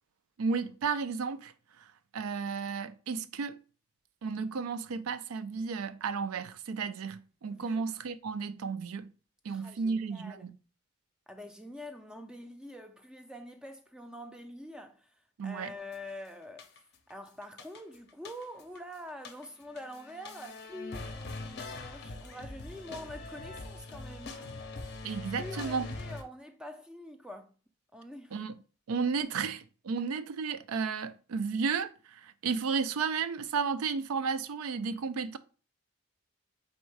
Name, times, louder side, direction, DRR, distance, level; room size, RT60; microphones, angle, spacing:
voice 1, 0.4-1.5 2.1-3.5 4.2-9.1 9.4-10.5 15.4-15.7 25.0-25.9 28.3-28.5 28.9-35.4, right 5 dB, 90° right, 0.4 m, -33 dB
voice 2, 7.5-7.9 9.5-10.5 11.3-15.1 15.4-16.7 17.1-24.4 25.4-27.5 27.9-28.4, left 1 dB, 5° right, 0.3 m, -45 dB
sound 1, 15.9-16.1 16.6-17.1 17.4-18.8 19.1-26.2, left 3 dB, 50° left, 0.5 m, -42 dB
4.3 x 3.6 x 3.2 m
head